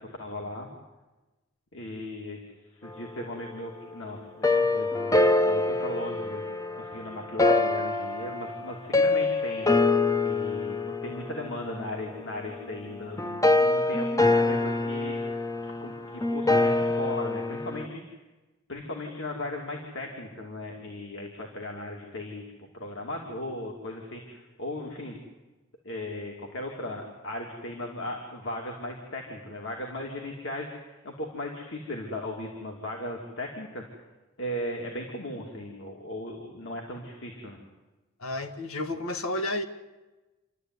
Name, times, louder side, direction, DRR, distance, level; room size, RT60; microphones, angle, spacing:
voice 1, 0.2-0.7 1.7-2.4 2.7-6.4 6.8-9.7 10.2-15.2 15.6-18.0 18.7-22.4 22.7-25.2 25.8-33.8 34.4-37.6, left 1 dB, 65° left, 0 dB, 2.8 m, -37 dB
sound 1, 4.4-17.9, left 2 dB, 15° left, 0.8 m, -25 dB
voice 2, 38.2-39.6, left 1 dB, 90° left, 8 dB, 1.9 m, -31 dB
28.0 x 12.5 x 9.7 m, 1.1 s
head